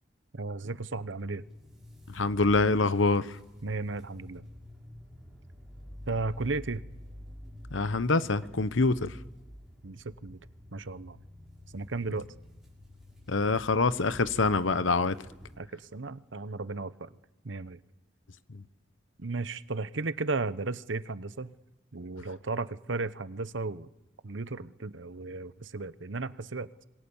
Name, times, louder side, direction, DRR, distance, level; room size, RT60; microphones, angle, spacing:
voice 1, 0.3-1.4 3.6-4.4 6.1-6.8 9.8-10.4 10.7-11.2 11.7-12.3 15.6-17.1 17.4-17.8 19.2-21.5 21.9-23.9 24.2-26.7, right 3 dB, 70° right, 0.9 m, -35 dB
sound 1, 0.9-15.6, left 1 dB, ahead, 6.3 m, -48 dB
voice 2, 2.1-3.4 7.7-9.2 13.3-15.2 18.5-18.6, left 3 dB, 75° left, 0.9 m, -25 dB
26.5 x 23.0 x 7.1 m
head